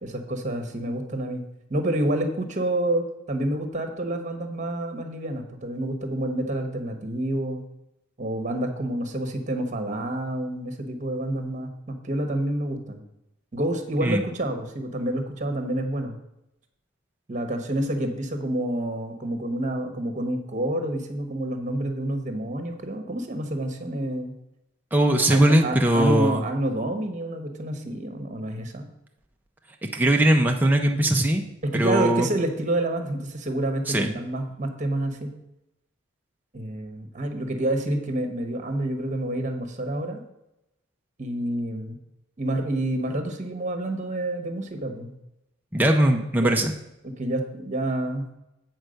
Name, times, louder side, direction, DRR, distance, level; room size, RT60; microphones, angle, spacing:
voice 1, 0.0-1.4 1.7-7.6 8.2-13.0 13.5-16.2 17.3-24.4 25.3-28.9 31.6-35.3 36.5-40.2 41.2-42.0 42.4-45.1 46.4-46.6 47.0-48.2, right 1 dB, 40° right, 6 dB, 1.1 m, -28 dB
voice 2, 24.9-26.4 29.9-31.4 31.7-32.3 33.9-34.1 45.7-46.7, right 1 dB, 10° right, 2 dB, 0.5 m, -20 dB
8.1 x 4.5 x 6.4 m, 0.87 s
head